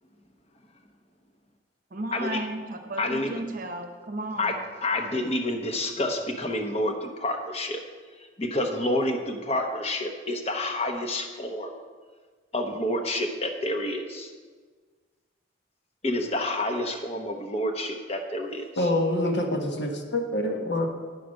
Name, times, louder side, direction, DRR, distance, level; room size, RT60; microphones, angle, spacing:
voice 1, 1.9-4.6, right 1 dB, 45° right, 5 dB, 0.8 m, -34 dB
voice 2, 3.0-3.3 4.4-4.5 4.8-7.8 8.4-11.7 12.5-14.3 16.0-18.9, left 1 dB, 30° left, 4 dB, 0.9 m, -28 dB
voice 3, 18.8-20.9, left 1 dB, 65° left, 2 dB, 1.2 m, -26 dB
9.3 x 5.8 x 6.3 m, 1.5 s
head